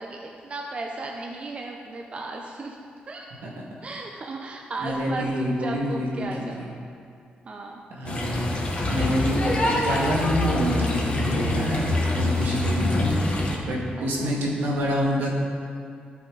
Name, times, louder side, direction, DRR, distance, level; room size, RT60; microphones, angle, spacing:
voice 1, 0.0-2.8 3.1-3.5 3.8-6.7 7.4-7.8 14.0-14.3, right 2 dB, 40° right, 0 dB, 0.7 m, -35 dB
voice 2, 4.8-6.3 6.6-6.7 7.9-8.5 8.9-13.1 13.7-15.3, equal, 80° right, -3 dB, 2.0 m, -27 dB
sound 1, 8.1-13.6, left 2 dB, 35° left, 1.6 m, -25 dB
13.0 x 5.9 x 4.0 m, 2.4 s
cardioid pair, 100°, 3 cm